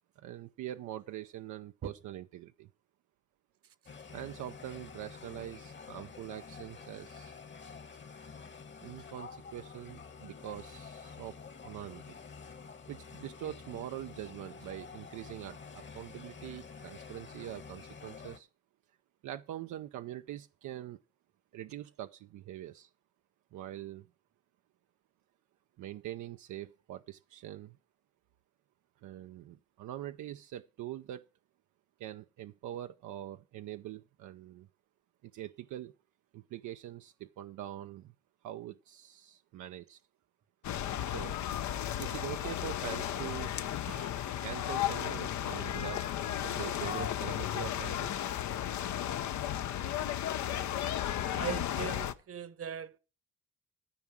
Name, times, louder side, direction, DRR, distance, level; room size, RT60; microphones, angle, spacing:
voice 1, 0.2-2.7 4.1-7.3 8.8-11.4 11.6-12.0 12.9-18.5 19.2-21.0 21.5-22.9 23.5-24.0 25.8-27.8 29.0-31.2 32.0-34.7 35.2-35.9 36.3-38.1 38.4-40.0 41.1-41.4 42.0-43.5 43.8-44.1 44.4-46.0 46.4-48.2, right 12 dB, 75° right, 0.6 m, -43 dB
Boat noise, 3.9-18.4, left 5 dB, 40° left, 1.4 m, -49 dB
Sea Beach People Preluka Rijeka--, 40.6-52.1, left 11 dB, 70° left, 0.8 m, -34 dB
voice 2, 51.3-53.0, right 8 dB, 50° right, 1.1 m, -39 dB
13.0 x 4.8 x 7.3 m
cardioid pair, 90°, 30 cm